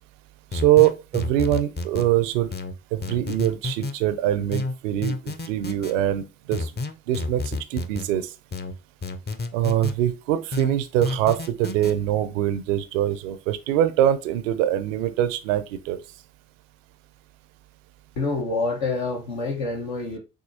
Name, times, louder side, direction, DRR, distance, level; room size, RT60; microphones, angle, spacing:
sound 1, 0.5-2.1 2.5-4.0 4.5-5.9 6.5-8.1 8.5-10.0 10.5-11.9, left 3 dB, 25° left, 0.7 m, -30 dB
voice 1, 0.5-2.5 2.9-6.7 7.1-8.3 9.5-16.0, right 12 dB, 85° right, 0.5 m, -23 dB
voice 2, 18.2-20.2, left 3 dB, 75° left, 1.1 m, -27 dB
6.3 x 2.7 x 2.6 m
hypercardioid pair, 45°, 37 cm